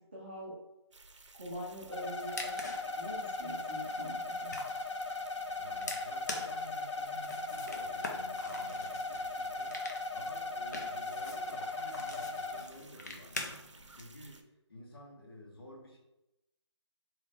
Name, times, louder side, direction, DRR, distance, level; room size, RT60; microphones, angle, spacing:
voice 1, 0.1-0.6 1.3-2.6 2.9-4.5, equal, 25° right, -5 dB, 0.6 m, -43 dB
sound 1, 0.9-14.4, right 3 dB, 90° right, 0.6 m, -56 dB
sound 2, 1.9-12.6, left 2 dB, 80° left, 0.7 m, -38 dB
sound 3, 2.0-14.0, left 2 dB, 35° left, 0.5 m, -46 dB
voice 2, 5.6-9.8 10.1-13.6 13.9-14.4 14.7-16.0, left 1 dB, 55° left, -2 dB, 1.4 m, -52 dB
3.5 x 3.0 x 3.5 m, 0.92 s
figure-of-eight pair, 175°, 15 cm